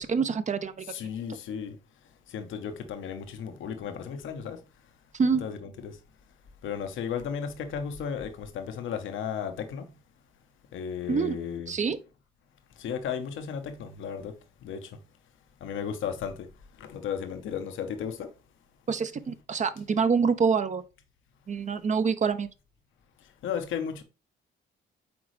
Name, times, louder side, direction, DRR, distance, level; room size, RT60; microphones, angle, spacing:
voice 1, 0.0-1.1 5.1-5.4 11.1-11.4 11.7-12.0 18.9-20.8 21.5-22.5, right 5 dB, 35° right, 0.6 m, -26 dB
voice 2, 0.9-1.8 2.3-4.6 5.4-6.0 6.6-9.9 10.7-11.7 12.8-14.3 14.6-14.9 15.6-16.5 16.8-18.3 23.4-24.0, left 7 dB, 80° left, 1.1 m, -34 dB
8.6 x 3.8 x 3.2 m
cardioid pair, 90°, 20 cm